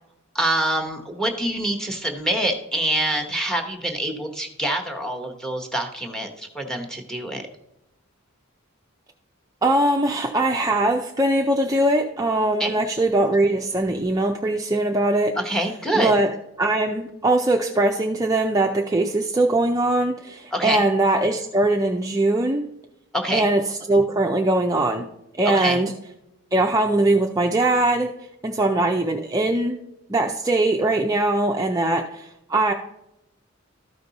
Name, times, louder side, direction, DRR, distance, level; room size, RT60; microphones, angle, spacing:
voice 1, 0.3-7.4 12.6-12.8 15.4-16.1 20.5-20.9 23.1-23.5 25.5-25.8, right 1 dB, 5° left, 3 dB, 0.9 m, -25 dB
voice 2, 9.6-15.3 15.9-16.3 16.6-22.7 23.3-25.1 25.4-25.9 26.5-28.1 28.4-29.8 30.1-32.7, right 2 dB, 15° right, 2 dB, 0.4 m, -21 dB
13.0 x 5.2 x 4.0 m, 0.87 s
head